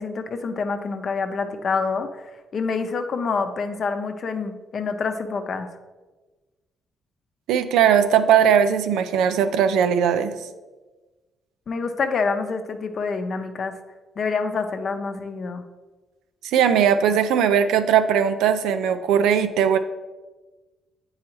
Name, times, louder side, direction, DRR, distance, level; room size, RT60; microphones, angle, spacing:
voice 1, 0.0-2.2 2.5-5.7 11.7-13.8 14.2-15.6, left 4 dB, 50° left, 7 dB, 0.6 m, -27 dB
voice 2, 7.5-10.3 16.5-19.8, right 8 dB, 90° right, 10 dB, 0.4 m, -19 dB
8.5 x 4.7 x 3.0 m, 1.2 s
cardioid pair, 90°, 0 cm